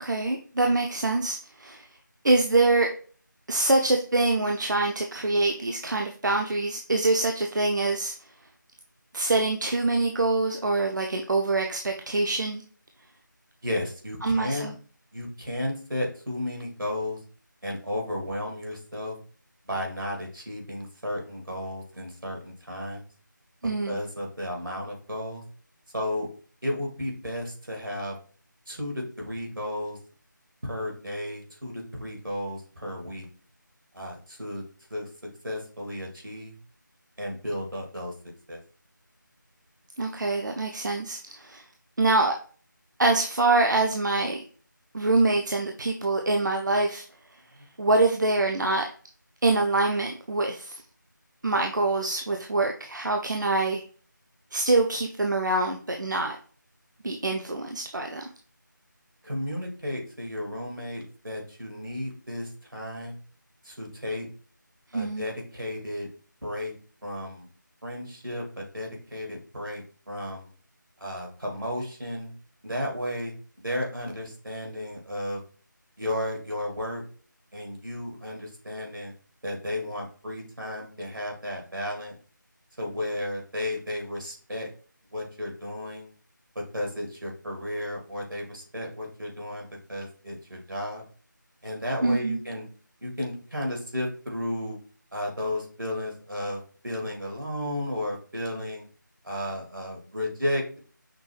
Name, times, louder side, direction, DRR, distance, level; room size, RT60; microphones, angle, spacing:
voice 1, 0.0-1.8 2.2-2.9 3.5-8.1 9.1-12.6 14.2-14.7 23.6-24.0 40.0-41.6 42.0-42.3 43.0-44.4 44.9-47.0 47.8-48.8 49.4-50.8 51.4-53.8 54.5-56.4 57.0-58.3 64.9-65.3 92.0-92.4, right 2 dB, 65° right, 2 dB, 0.6 m, -25 dB
voice 2, 13.6-14.7 15.1-17.2 17.6-19.2 19.7-23.0 23.9-25.4 25.9-26.3 26.6-28.2 28.7-30.0 30.6-33.3 33.9-34.6 34.9-35.1 35.4-36.5 37.2-38.1 38.5-38.6 59.2-63.2 63.6-64.3 64.9-66.1 66.4-66.7 67.0-67.5 67.8-70.5 71.0-72.3 72.6-73.3 73.6-75.4 76.0-77.0 77.5-79.1 79.4-82.1 82.8-84.7 85.1-86.1 86.7-91.0 91.6-92.7 93.0-94.8 95.1-98.9 99.2-100.8, left 1 dB, 85° right, 0 dB, 2.0 m, -33 dB
5.9 x 2.3 x 3.1 m, 0.42 s
figure-of-eight pair, 165°, 11 cm